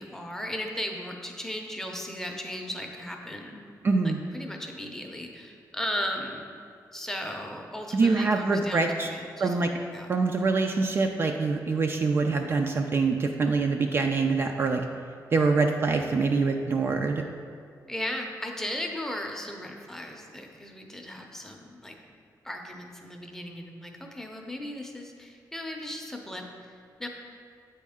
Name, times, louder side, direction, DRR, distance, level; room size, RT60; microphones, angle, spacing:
voice 1, 0.0-3.6 4.0-6.5 6.9-9.6 9.9-10.1 17.9-21.9 22.4-26.5 27.0-27.1, left 1 dB, 5° left, 1 dB, 0.6 m, -36 dB
voice 2, 3.8-4.2 7.9-9.1 9.4-9.7 10.1-14.8 15.3-17.2, right 4 dB, 35° right, 3 dB, 0.3 m, -25 dB
8.2 x 4.2 x 3.6 m, 2.3 s
wide cardioid pair, 140°, 7 cm